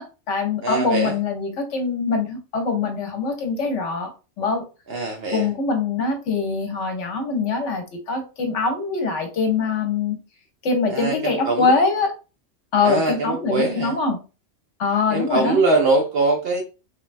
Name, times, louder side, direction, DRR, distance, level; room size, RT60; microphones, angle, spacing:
voice 1, 0.0-4.1 4.4-4.6 5.3-10.2 10.6-12.1 12.7-14.2 14.8-15.6, left 4 dB, 70° left, 1.0 m, -23 dB
voice 2, 0.6-1.1 4.9-5.5 10.9-11.8 12.8-13.9 15.1-16.6, right 2 dB, 65° right, 0.7 m, -22 dB
3.1 x 2.1 x 2.5 m
omnidirectional pair, 1.4 m